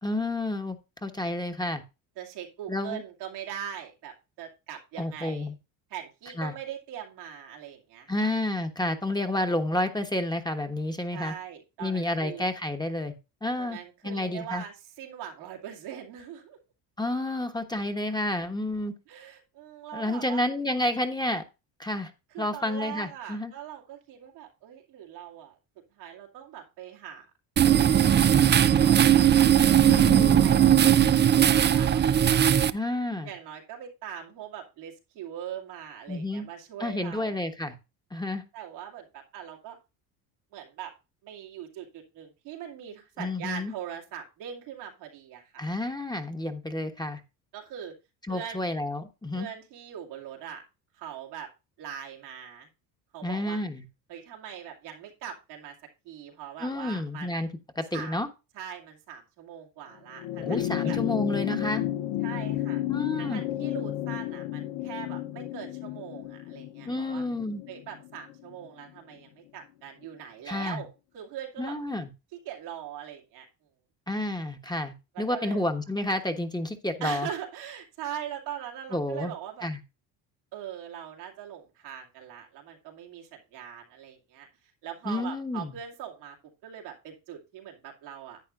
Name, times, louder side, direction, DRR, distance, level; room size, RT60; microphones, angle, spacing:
voice 1, 0.0-1.8 2.7-3.0 5.0-5.5 6.4-6.5 8.1-11.3 11.8-13.1 13.4-13.8 14.0-14.6 17.0-18.9 19.9-21.4 21.8-22.1 22.4-23.5 29.8-30.5 32.7-33.3 36.1-36.5 36.8-37.8 38.1-38.4 43.2-43.7 45.6-47.2 48.3-49.5 53.2-53.8 56.6-57.5 57.8-58.3 60.4-61.9 62.9-63.4 66.9-67.6 70.5-70.8 71.6-72.1 74.1-77.3 78.9-79.3 79.6-79.8 85.0-85.7, left 1 dB, 10° left, 6 dB, 1.2 m, -30 dB
voice 2, 2.2-5.5 5.9-8.3 11.1-12.5 13.6-16.6 19.1-20.5 22.3-25.6 25.9-27.3 27.6-32.8 33.2-37.4 38.5-39.8 40.5-40.9 41.2-45.6 47.5-47.9 48.3-48.7 49.3-50.6 50.9-51.5 51.8-52.7 53.1-53.6 54.1-55.8 56.0-57.4 57.9-58.2 58.5-61.0 62.2-62.8 63.2-67.2 67.7-71.8 72.3-73.5 75.1-75.6 77.0-79.7 80.5-86.4 86.6-88.4, right 9 dB, 85° right, 0 dB, 2.5 m, -41 dB
sound 1, 27.6-32.7, right 10 dB, 25° right, 0.4 m, -19 dB
sound 2, 60.1-68.8 70.0-70.1, left 14 dB, 60° left, 0.7 m, -32 dB
11.0 x 8.4 x 2.5 m, 0.27 s
supercardioid pair, 70°, 48 cm